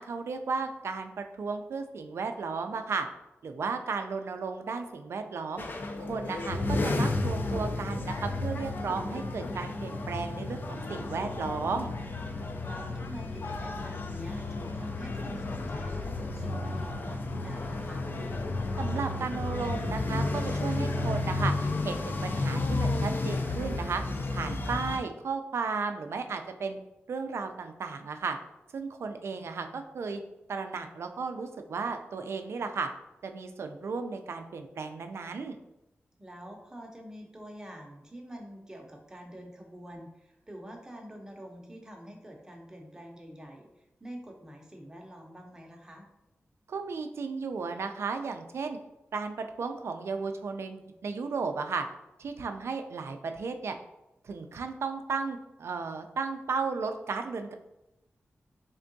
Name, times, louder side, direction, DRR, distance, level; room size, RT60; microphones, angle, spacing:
voice 1, 0.0-3.1 3.4-5.7 6.0-11.9 18.8-24.0 24.3-26.8 27.1-28.4 28.7-30.2 30.5-32.9 33.2-35.6 46.7-48.8 49.1-51.9 52.2-53.8 54.2-57.5, right 4 dB, 70° right, 7 dB, 0.4 m, -34 dB
sound 1, 5.6-25.0, left 2 dB, 45° left, 0.4 m, -32 dB
voice 2, 12.6-18.1 29.3-29.8 36.2-43.7 44.0-46.1, equal, 15° right, 1 dB, 0.6 m, -46 dB
3.6 x 3.3 x 2.6 m, 0.89 s
wide cardioid pair, 135°, 5 cm